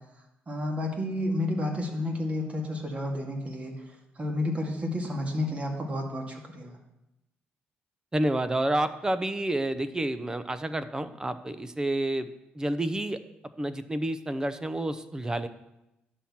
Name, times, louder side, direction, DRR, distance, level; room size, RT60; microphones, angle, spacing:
voice 1, 0.5-3.7 4.2-6.8, left 1 dB, 35° right, 1 dB, 2.1 m, -31 dB
voice 2, 8.1-12.3 12.5-13.2 13.6-15.5, right 1 dB, 15° right, 11 dB, 0.7 m, -29 dB
11.0 x 4.4 x 7.3 m, 0.90 s
cardioid pair, 85°, 4 cm